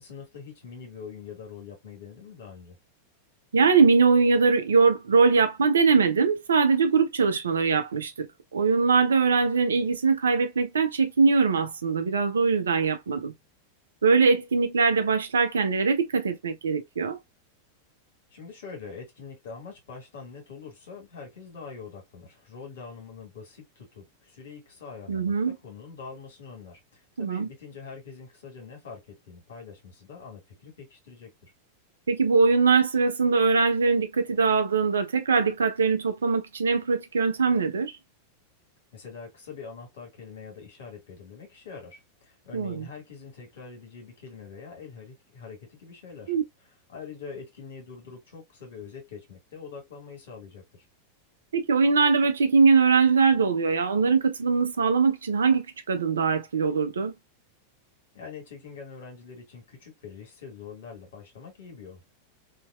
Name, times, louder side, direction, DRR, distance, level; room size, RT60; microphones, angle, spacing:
voice 1, 0.0-2.8 18.3-31.5 38.9-46.3 46.6-50.8 58.1-62.1, left 5 dB, 60° left, 1.6 m, -44 dB
voice 2, 3.5-8.3 8.5-13.3 14.0-17.2 25.1-25.5 27.2-27.5 32.1-37.9 42.5-42.9 46.3-46.4 51.5-57.1, right 5 dB, 70° right, 0.5 m, -22 dB
2.9 x 2.7 x 2.3 m
figure-of-eight pair, 90°, 0 cm